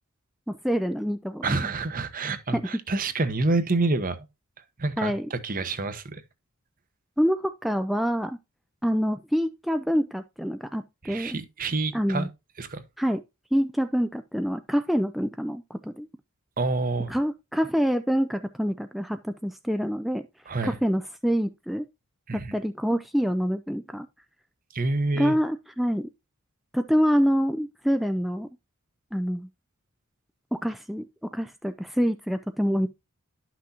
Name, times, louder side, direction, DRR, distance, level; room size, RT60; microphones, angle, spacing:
voice 1, 0.5-1.5 2.5-2.6 5.0-5.3 7.2-8.4 8.8-11.4 11.9-12.3 13.0-13.2 13.5-16.1 17.1-20.2 20.6-21.9 22.3-24.1 25.2-26.1 26.7-28.5 29.1-29.5 30.5-31.1 31.3-32.9, equal, ahead, 0.3 m, -26 dB
voice 2, 1.4-4.2 4.8-6.2 11.0-12.3 12.6-12.8 16.6-17.1 20.5-20.8 22.3-22.6 24.7-25.4, right 3 dB, 40° right, 0.9 m, -27 dB
11.5 x 6.0 x 2.8 m
head